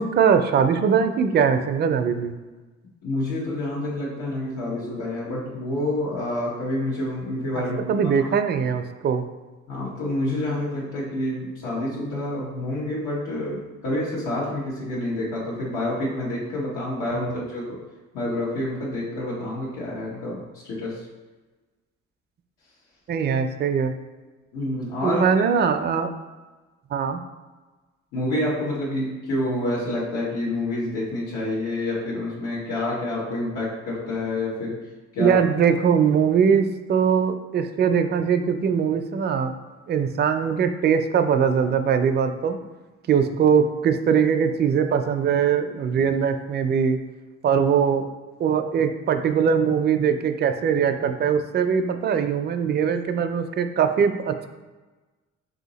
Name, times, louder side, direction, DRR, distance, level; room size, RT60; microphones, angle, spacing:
voice 1, 0.0-2.3 7.9-9.2 23.1-23.9 25.0-26.1 26.9-27.2 35.2-39.5 39.9-42.6 43.1-47.0 47.4-48.1 48.4-54.5, right 7 dB, 35° right, 7 dB, 0.4 m, -21 dB
voice 2, 3.0-8.1 9.7-17.6 18.1-21.0 24.5-25.2 28.1-34.7 35.1-35.4 43.1-43.2, left 1 dB, 90° left, -7 dB, 1.2 m, -28 dB
3.8 x 2.8 x 4.0 m, 1.2 s
cardioid pair, 90°, 30 cm